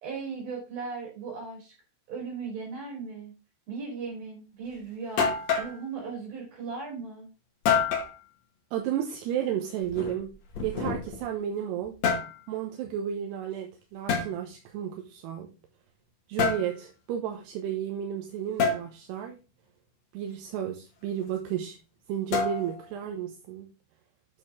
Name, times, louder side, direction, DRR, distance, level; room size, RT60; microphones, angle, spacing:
voice 1, 0.0-1.7 2.1-3.3 3.7-5.3 5.6-7.3, right 5 dB, 60° right, 5.3 m, -37 dB
sound 1, 4.7-4.8 5.2-5.8 7.7-8.1 9.8-11.3 11.8-12.3 14.1-14.3 16.4-16.7 18.6-18.8 22.3-22.9, left 6 dB, 50° left, 2.5 m, -27 dB
voice 2, 8.7-10.3 10.6-12.0 12.5-15.5 16.3-19.4 20.1-21.8 22.1-23.7, right 10 dB, 80° right, 3.0 m, -32 dB
8.8 x 6.9 x 3.7 m
omnidirectional pair, 4.8 m